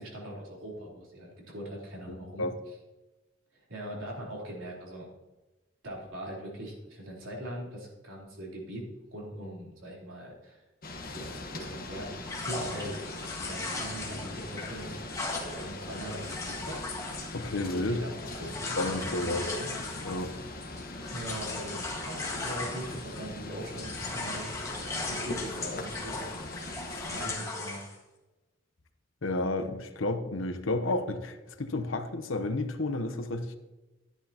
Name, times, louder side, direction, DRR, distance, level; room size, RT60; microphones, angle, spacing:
voice 1, 0.0-2.5 3.5-5.1 5.8-10.6 11.1-12.1 12.4-13.0 13.4-14.9 15.4-16.8 17.9-19.7 21.1-24.5 25.0-26.3 27.1-27.8, right 1 dB, 85° right, -4 dB, 3.8 m, -41 dB
sound 1, 10.8-27.3, left 2 dB, 45° left, 1.4 m, -41 dB
sound 2, 12.3-23.4 23.6-27.9, left 3 dB, 15° left, 1.7 m, -38 dB
voice 2, 17.3-18.0 18.8-19.5 20.0-20.3 29.2-33.6, left 2 dB, 90° left, 9 dB, 0.9 m, -31 dB
12.5 x 10.0 x 2.9 m, 1.1 s
head